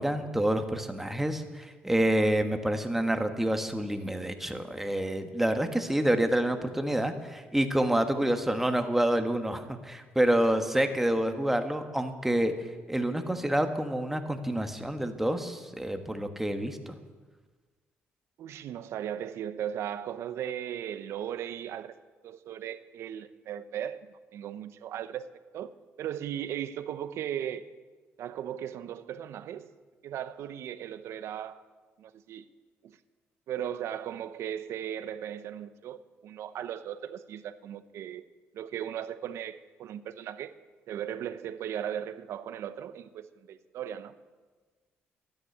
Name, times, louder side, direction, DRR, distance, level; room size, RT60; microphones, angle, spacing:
voice 1, 0.0-12.5 12.9-17.0, right 1 dB, 5° right, 1.3 m, -28 dB
voice 2, 18.4-21.9 22.2-25.3 25.5-25.7 26.0-27.7 28.2-29.7 30.0-31.6 32.0-32.5 32.8-33.0 33.5-38.2 38.5-40.5 40.9-44.2, right 10 dB, 70° right, 0.8 m, -37 dB
13.0 x 10.0 x 9.5 m
cardioid pair, 115°, 5 cm